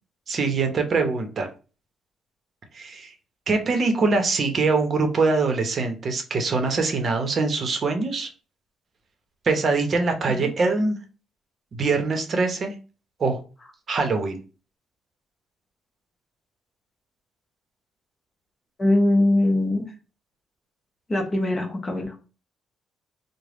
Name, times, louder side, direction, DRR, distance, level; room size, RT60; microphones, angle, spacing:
voice 1, 0.3-1.5 2.7-3.1 3.5-8.3 9.4-11.0 11.7-12.7 13.2-13.4 13.9-14.4, right 4 dB, 45° right, 5 dB, 0.8 m, -23 dB
voice 2, 18.8-19.9 21.1-22.2, left 1 dB, 25° left, 2 dB, 0.9 m, -22 dB
3.3 x 2.1 x 3.7 m, 0.35 s
cardioid pair, 90°, 0 cm